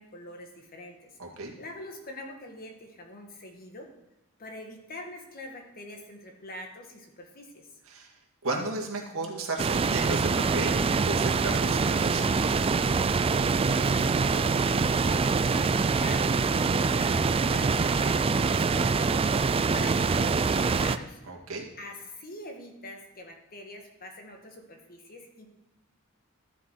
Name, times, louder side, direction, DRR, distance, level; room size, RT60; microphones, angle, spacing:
voice 1, 0.0-1.2 1.6-3.9 4.4-7.7 13.7-19.2 19.5-21.2 21.8-25.5, left 1 dB, 45° left, 4 dB, 1.5 m, -44 dB
voice 2, 1.2-1.5 7.9-8.1 8.4-12.5 21.3-21.7, right 3 dB, 65° right, 0 dB, 2.0 m, -34 dB
sound 1, 9.6-21.0, right 4 dB, 25° right, 0.3 m, -25 dB
13.0 x 7.4 x 4.5 m, 0.92 s
head